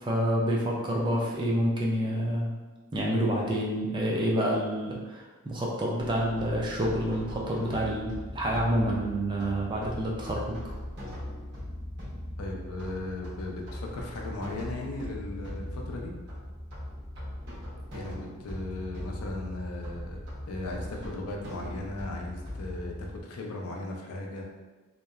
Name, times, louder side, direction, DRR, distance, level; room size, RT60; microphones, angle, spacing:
voice 1, 0.0-2.5 2.9-10.6, equal, 20° right, -3 dB, 0.4 m, -28 dB
sound 1, 6.0-23.2, left 1 dB, 50° right, 1.0 m, -40 dB
voice 2, 12.4-16.1 17.9-24.4, left 2 dB, 75° left, 0 dB, 0.4 m, -37 dB
2.7 x 2.0 x 2.3 m, 1.2 s
head